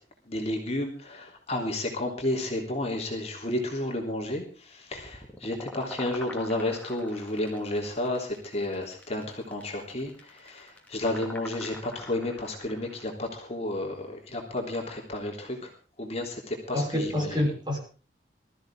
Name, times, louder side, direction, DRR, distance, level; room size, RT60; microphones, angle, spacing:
voice 1, 0.2-15.7 16.0-17.5, left 1 dB, 35° left, 1 dB, 3.4 m, -32 dB
sound 1, 4.9-13.0, left 1 dB, 10° left, 2.7 m, -45 dB
voice 2, 16.7-17.8, left 1 dB, 25° right, 0 dB, 6.2 m, -27 dB
21.5 x 14.0 x 3.7 m, 0.36 s
head